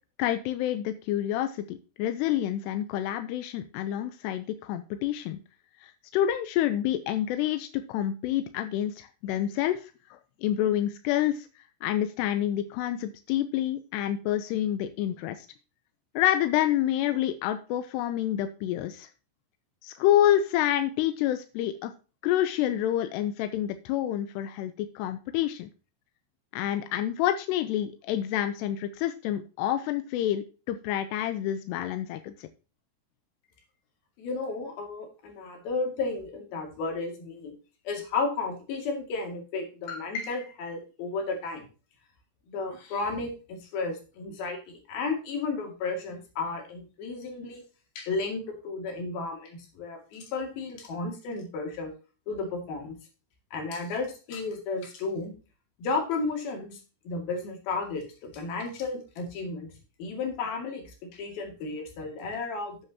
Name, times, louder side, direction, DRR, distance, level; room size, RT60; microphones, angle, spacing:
voice 1, 0.2-5.4 5.8-11.5 11.8-15.5 16.2-19.1 19.8-21.9 22.2-25.7 26.5-32.5, left 12 dB, 90° left, 9 dB, 2.9 m, -28 dB
voice 2, 34.2-37.5 37.9-41.7 42.5-47.6 48.0-51.9 52.3-53.0 53.5-55.3 55.8-56.8 57.1-59.7 60.0-62.9, left 3 dB, 65° left, 3 dB, 4.2 m, -33 dB
12.0 x 8.1 x 2.9 m, 0.34 s
omnidirectional pair, 4.7 m